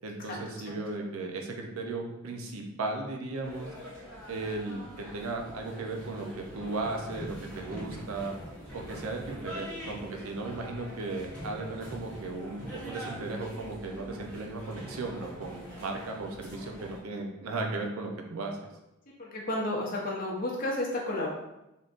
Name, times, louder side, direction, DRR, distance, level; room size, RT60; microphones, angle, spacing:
voice 1, 0.0-3.7 4.3-8.3 8.7-18.6, right 3 dB, 75° right, 2 dB, 0.5 m, -36 dB
sound 1, 3.4-17.0, equal, 5° left, 0.8 m, -44 dB
voice 2, 19.2-21.3, left 1 dB, 40° left, -4 dB, 0.7 m, -31 dB
3.5 x 2.6 x 2.5 m, 0.92 s
head